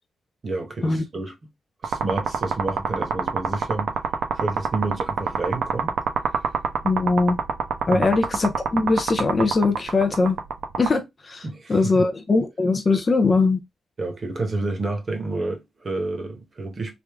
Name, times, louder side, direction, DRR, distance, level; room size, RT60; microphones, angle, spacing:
voice 1, 0.4-1.5 1.8-4.0 4.3-5.9 7.9-8.1 11.4-12.1 14.0-17.0, right 2 dB, 35° right, 1.0 m, -29 dB
sound 1, 1.8-10.9, right 6 dB, 70° right, 0.7 m, -25 dB
voice 2, 6.8-7.4 7.9-10.4 10.8-13.6, left 3 dB, 25° left, 0.5 m, -21 dB
3.4 x 2.5 x 3.4 m
wide cardioid pair, 180°, 0 cm